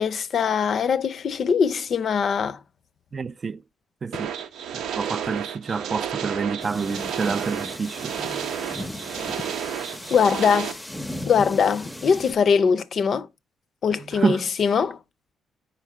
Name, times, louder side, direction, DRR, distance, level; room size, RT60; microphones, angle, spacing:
voice 1, 0.0-2.6 10.1-10.8 11.3-13.3 13.8-15.0, left 6 dB, 55° left, 0.5 m, -22 dB
voice 2, 3.1-3.6 4.0-4.3 4.7-8.1 14.1-14.5, right 5 dB, 40° right, 0.3 m, -28 dB
sound 1, 4.1-10.7, right 9 dB, 85° right, 0.6 m, -31 dB
sound 2, 6.6-12.3, left 1 dB, 10° left, 0.6 m, -37 dB
4.5 x 4.5 x 4.9 m
cardioid pair, 90°, 0 cm